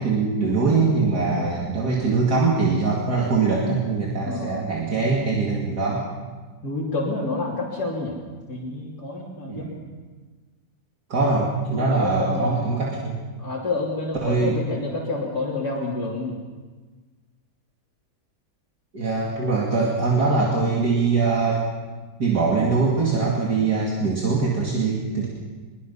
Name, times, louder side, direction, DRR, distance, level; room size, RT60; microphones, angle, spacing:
voice 1, 0.0-6.0 9.5-9.7 11.1-13.2 14.2-14.6 18.9-21.6 22.2-25.3, right 4 dB, 65° right, -3 dB, 3.1 m, -22 dB
voice 2, 1.2-1.6 4.2-4.6 6.6-8.2 8.5-9.7 11.7-12.7 13.4-16.3, left 3 dB, 60° left, -6 dB, 3.6 m, -29 dB
23.5 x 22.5 x 5.6 m, 1.4 s
omnidirectional pair, 1.9 m